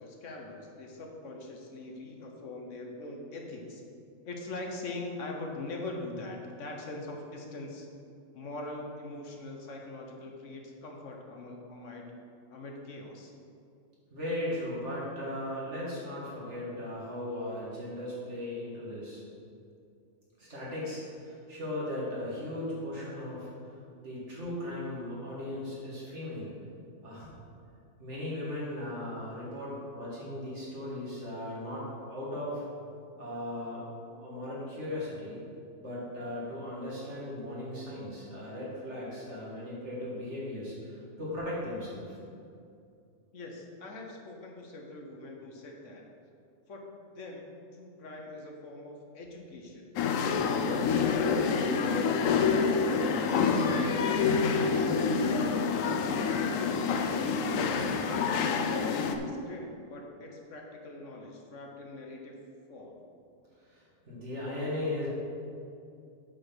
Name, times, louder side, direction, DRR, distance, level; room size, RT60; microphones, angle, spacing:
voice 1, 0.0-3.8 4.2-7.9 8.3-12.1 12.5-13.3 43.3-46.0 46.7-49.9 50.4-52.6 52.9-53.6 55.0-58.6 59.2-62.4 62.7-63.0, left 2 dB, 70° left, 1 dB, 1.4 m, -43 dB
voice 2, 14.1-19.2 20.4-26.5 27.0-27.3 28.0-32.6 33.2-35.4 35.8-42.2 63.6-65.1, left 1 dB, 60° right, -7 dB, 2.7 m, -37 dB
sound 1, 50.0-59.2, left 5 dB, 85° left, 1.0 m, -27 dB
8.3 x 4.9 x 6.1 m, 2.5 s
omnidirectional pair, 1.3 m